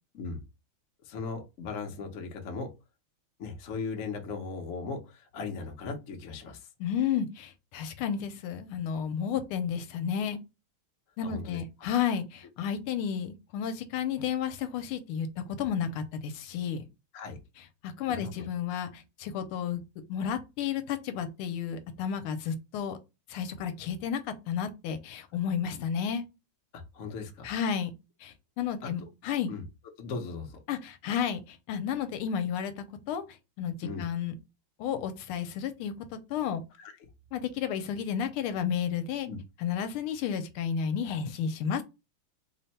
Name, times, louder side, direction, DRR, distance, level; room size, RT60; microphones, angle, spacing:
voice 1, 1.0-2.7 3.4-6.7 11.2-11.9 17.1-17.4 18.1-18.5 26.7-27.5 28.8-29.1 29.5-29.6 30.0-30.6 33.8-34.0 36.8-36.9 39.2-39.4, left 4 dB, 60° left, 0.8 m, -38 dB
voice 2, 6.8-10.4 11.2-16.8 17.8-19.8 20.1-23.0 23.3-26.3 27.4-27.9 28.2-29.5 30.7-33.2 33.6-34.3 34.8-35.9 36.3-36.6 37.3-39.3 39.6-41.8, left 8 dB, 80° left, 1.5 m, -32 dB
3.5 x 2.1 x 4.0 m
omnidirectional pair, 2.4 m